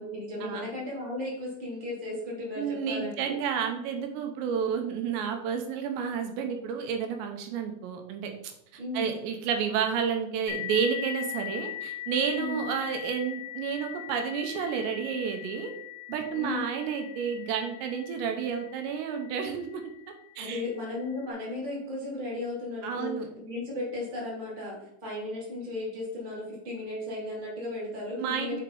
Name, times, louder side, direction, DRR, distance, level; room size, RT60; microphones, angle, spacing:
voice 1, 0.0-3.3 8.8-9.2 12.3-12.7 16.3-16.7 20.4-28.6, left 2 dB, 15° right, -5 dB, 1.9 m, -35 dB
voice 2, 2.6-8.3 8.9-15.7 16.1-19.8 20.4-20.6 22.8-23.3 28.2-28.6, right 7 dB, 80° right, 4 dB, 3.1 m, -30 dB
sound 1, 10.5-19.7, left 14 dB, 85° left, 1.4 m, -40 dB
6.6 x 4.9 x 4.6 m, 0.78 s
omnidirectional pair, 5.0 m